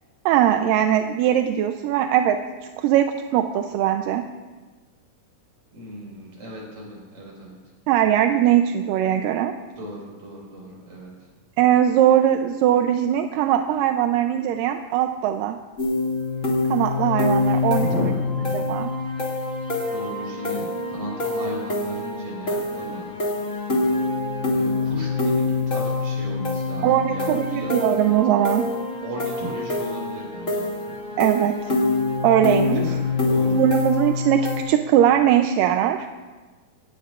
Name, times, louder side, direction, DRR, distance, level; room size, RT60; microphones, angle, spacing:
voice 1, 0.3-2.4 2.8-4.2 7.9-9.5 11.6-15.6 16.7-17.9 18.7-18.9 26.8-28.7 31.2-31.6 32.2-32.8 33.5-36.1, right 11 dB, 85° right, 6 dB, 2.3 m, -20 dB
voice 2, 5.7-7.7 9.8-11.3 17.7-18.6 19.9-23.1 24.5-27.8 29.0-30.9 32.7-33.6, equal, 60° right, -3 dB, 6.2 m, -35 dB
sound 1, 15.8-34.6, left 3 dB, 25° left, 2.2 m, -25 dB
26.0 x 17.5 x 2.5 m, 1.3 s
omnidirectional pair, 3.8 m